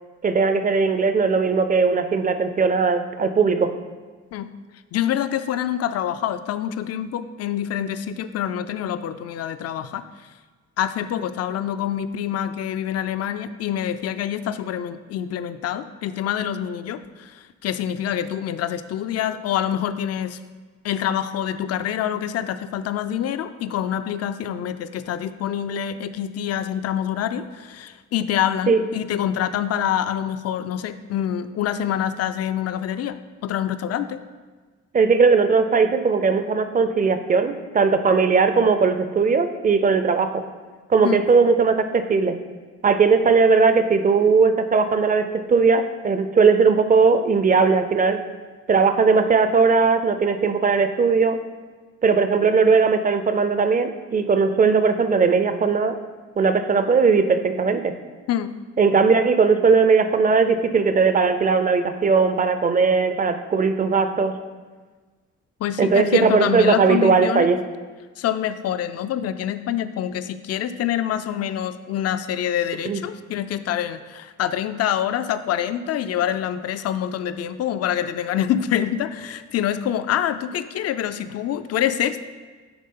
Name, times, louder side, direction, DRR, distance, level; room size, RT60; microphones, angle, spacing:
voice 1, 0.2-3.7 28.7-28.8 34.9-40.4 40.9-42.3 42.8-48.2 48.7-51.4 52.0-56.0 56.4-57.9 58.8-64.3 65.8-67.6 72.9-73.0, right 5 dB, 30° right, 9 dB, 0.5 m, -18 dB
voice 2, 4.9-10.0 10.8-20.4 20.8-33.2 33.4-34.2 41.0-41.2 58.3-58.5 65.6-67.5 68.2-82.2, left 10 dB, 55° left, 12 dB, 0.4 m, -26 dB
9.5 x 3.5 x 3.7 m, 1.4 s
cardioid pair, 90°, 30 cm